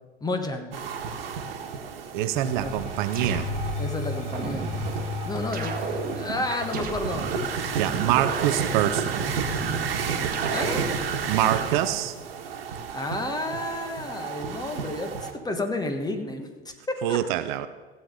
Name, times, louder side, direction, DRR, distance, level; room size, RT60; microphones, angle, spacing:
voice 1, 0.2-0.7 2.3-2.8 3.8-4.7 5.2-7.3 10.5-10.8 12.9-17.2, left 2 dB, 15° left, 6 dB, 1.5 m, -31 dB
sound 1, 0.7-15.3, right 6 dB, 70° right, 1.5 m, -32 dB
voice 2, 2.1-3.5 7.8-9.2 11.2-12.1 17.0-17.7, right 13 dB, 50° right, 12 dB, 0.7 m, -25 dB
sound 2, 2.2-12.0, left 4 dB, 45° left, 1.1 m, -37 dB
sound 3, 2.5-3.8 4.3-5.0 5.5-7.4 7.9-9.8 10.3-11.0, right 4 dB, 30° right, 1.6 m, -33 dB
16.0 x 7.9 x 5.3 m, 1.4 s
hypercardioid pair, 90°, 30 cm